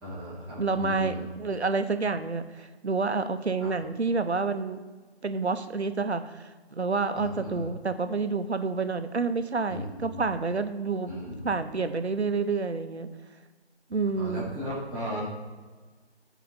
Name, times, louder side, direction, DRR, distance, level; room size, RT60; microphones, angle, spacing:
voice 1, 0.0-1.2 3.6-3.7 7.1-7.5 9.7-10.2 11.1-11.4 14.2-15.2, equal, 5° right, -12 dB, 2.3 m, -36 dB
voice 2, 0.6-4.8 5.2-11.1 11.4-13.1 13.9-14.4, right 4 dB, 75° right, 10 dB, 0.9 m, -29 dB
7.6 x 5.1 x 6.8 m, 1.3 s
figure-of-eight pair, 160°, 33 cm